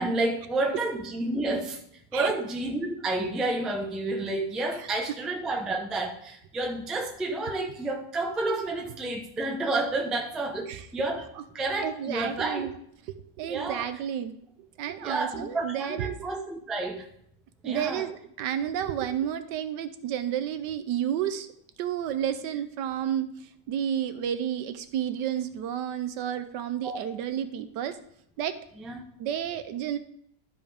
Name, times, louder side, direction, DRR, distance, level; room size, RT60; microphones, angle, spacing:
voice 1, 0.0-1.8 2.1-11.3 11.5-12.7 13.5-13.8 15.0-17.0 17.6-18.0 26.8-27.0 28.8-29.0, right 2 dB, ahead, 2 dB, 0.3 m, -30 dB
voice 2, 11.8-12.7 13.1-14.3 14.8-16.3 17.6-21.5 21.8-28.0 28.4-28.6 29.2-30.0, right 10 dB, 75° right, 10 dB, 1.2 m, -31 dB
12.5 x 5.2 x 3.5 m, 0.68 s
omnidirectional pair, 2.0 m